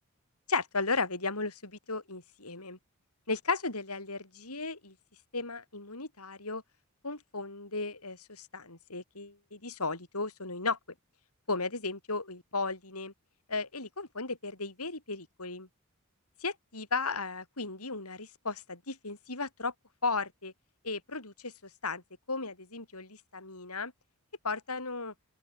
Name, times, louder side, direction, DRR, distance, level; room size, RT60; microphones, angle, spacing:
voice 1, 0.5-2.8 3.3-4.9 5.3-6.6 7.0-10.8 11.5-13.1 13.5-15.7 16.4-19.7 20.0-20.5 20.8-21.5 21.8-22.0 22.3-23.9 24.4-25.1, left 3 dB, 85° left, 7.6 m, -35 dB
open air
head